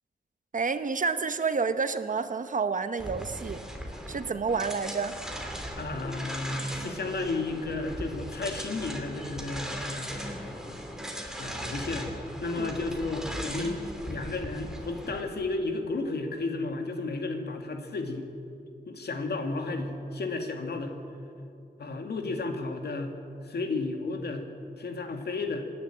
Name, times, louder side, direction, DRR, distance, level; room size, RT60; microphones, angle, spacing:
voice 1, 0.5-3.6 4.1-5.2 12.6-12.7, right 5 dB, 50° right, 10 dB, 0.9 m, -29 dB
sound 1, 3.0-15.2, equal, 5° right, 2.9 m, -38 dB
voice 2, 5.8-10.7 11.4-12.1 12.4-18.3 18.9-21.0 21.8-23.1 23.4-24.5 24.8-25.7, left 3 dB, 85° left, 4 dB, 2.3 m, -33 dB
26.5 x 11.0 x 9.1 m, 2.6 s
wide cardioid pair, 110°, 17 cm